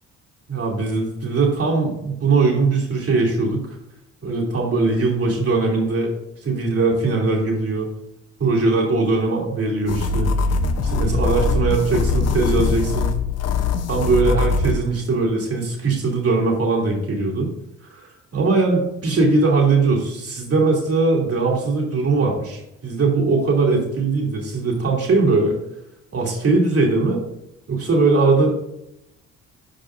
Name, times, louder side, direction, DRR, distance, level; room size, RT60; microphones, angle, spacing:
voice 1, 0.5-3.8 4.2-6.1 6.4-7.9 8.4-10.3 10.8-13.1 13.9-17.5 17.8-25.6 26.1-27.2 27.7-28.5, right 3 dB, 50° right, -2 dB, 2.6 m, -20 dB
sound 1, 9.9-14.8, left 3 dB, 55° left, 0.8 m, -21 dB
11.0 x 5.0 x 2.5 m, 0.84 s
cardioid pair, 90°, 30 cm